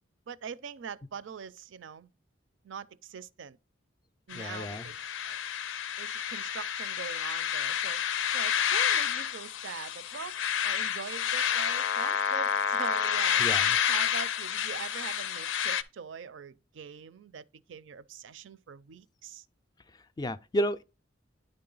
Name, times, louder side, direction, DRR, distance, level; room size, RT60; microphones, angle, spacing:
voice 1, 0.3-2.1 2.6-3.6 4.3-5.4 6.0-8.0 8.3-10.3 10.6-19.4, right 6 dB, 75° right, 0.4 m, -43 dB
sound 1, 4.3-15.8, left 9 dB, 80° left, 0.5 m, -29 dB
voice 2, 4.3-4.9 13.4-13.7 20.2-20.8, equal, 20° left, 0.3 m, -31 dB
10.0 x 3.8 x 3.8 m
head